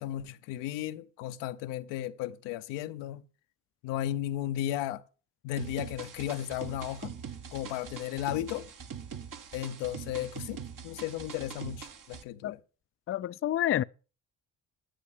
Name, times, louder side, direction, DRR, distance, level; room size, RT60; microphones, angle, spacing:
voice 1, 0.0-3.2 3.8-5.0 5.4-7.1 7.5-8.7 9.5-12.6, left 12 dB, 85° left, 0.8 m, -35 dB
sound 1, 5.6-12.2, right 7 dB, 50° right, 1.3 m, -43 dB
voice 2, 13.1-13.8, left 12 dB, 35° left, 0.4 m, -28 dB
11.5 x 7.7 x 5.0 m
supercardioid pair, 60°, 41 cm